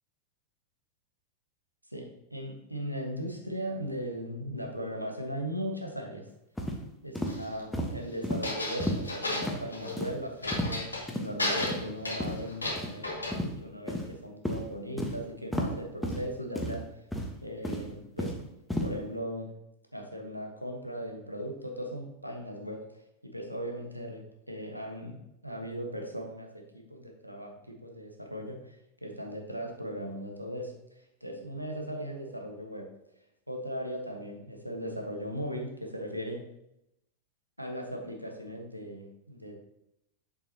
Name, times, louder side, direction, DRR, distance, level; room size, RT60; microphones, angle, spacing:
voice 1, 1.9-6.2 7.0-10.9 11.2-16.8 17.4-18.3 18.8-19.5 19.9-22.8 23.2-24.2 24.5-28.8 29.0-32.9 33.5-36.4 37.6-39.5, equal, 90° right, 1 dB, 1.4 m, -38 dB
sound 1, 6.6-6.8 7.1-7.3 7.7-7.9 8.2-8.4 8.8-9.0 9.4-9.6 10.0-10.1 10.5-10.8 11.1-11.2 11.6-11.8 12.2-12.3 12.8-12.9 13.3-13.5 13.9-14.1 14.4-14.6 15.0-15.1 15.5-15.7 16.0-16.2 16.5-16.7 17.1-17.3 17.6-18.4 18.7-18.9, left 1 dB, 5° left, 1.3 m, -32 dB
sound 2, 7.3-7.6 8.4-10.0 10.4-11.1 11.4-13.3, left 2 dB, 80° left, 2.1 m, -33 dB
8.1 x 7.1 x 2.9 m, 0.82 s
figure-of-eight pair, 90°, 0 cm